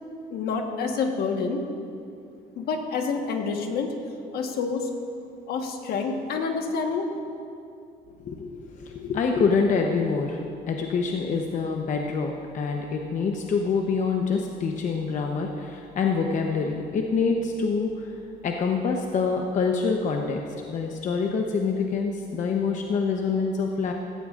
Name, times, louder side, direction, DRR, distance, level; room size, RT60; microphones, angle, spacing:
voice 1, 0.3-1.6 2.6-3.9 4.3-4.9 5.5-7.1, left 5 dB, 65° left, 3 dB, 1.4 m, -28 dB
voice 2, 8.2-10.4 10.7-20.4 20.7-23.9, left 5 dB, 50° left, 2 dB, 0.9 m, -26 dB
15.5 x 14.5 x 2.5 m, 2.6 s
cardioid pair, 110°, 17 cm